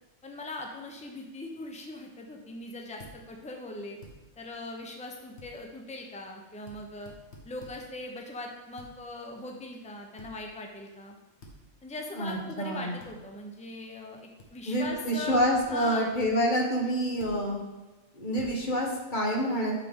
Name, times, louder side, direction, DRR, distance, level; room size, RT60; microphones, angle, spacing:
voice 1, 0.2-4.0 4.4-7.1 7.4-11.2 11.8-15.4 15.7-16.1, left 2 dB, 5° left, 2 dB, 0.8 m, -40 dB
sound 1, 3.0-3.2 4.0-4.2 5.4-5.5 6.7-6.8 7.1-7.8 8.8-8.9 10.2-10.3 11.4-11.6 12.3-12.4 13.0-13.1 14.4-14.5 14.8-15.0 15.3-15.6 16.2-16.3 17.2-17.4 18.4-18.6, left 1 dB, 60° left, 1.6 m, -49 dB
voice 2, 12.2-13.0 14.7-17.6 18.2-19.7, equal, 40° left, -1 dB, 1.5 m, -27 dB
8.2 x 6.7 x 3.8 m, 1.1 s
omnidirectional pair, 1.3 m